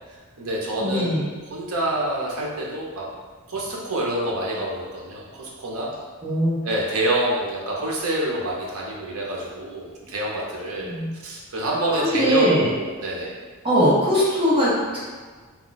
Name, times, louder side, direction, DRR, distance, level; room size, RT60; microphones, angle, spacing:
voice 1, 0.1-1.2 1.5-3.1 3.5-5.9 6.6-10.9 11.2-12.5 12.7-13.3, right 1 dB, 75° right, -3 dB, 0.6 m, -27 dB
voice 2, 0.7-1.3 6.2-6.6 10.8-11.1 12.0-12.7 13.6-15.0, equal, 25° right, -9 dB, 0.7 m, -21 dB
2.3 x 2.2 x 3.8 m, 1.4 s
head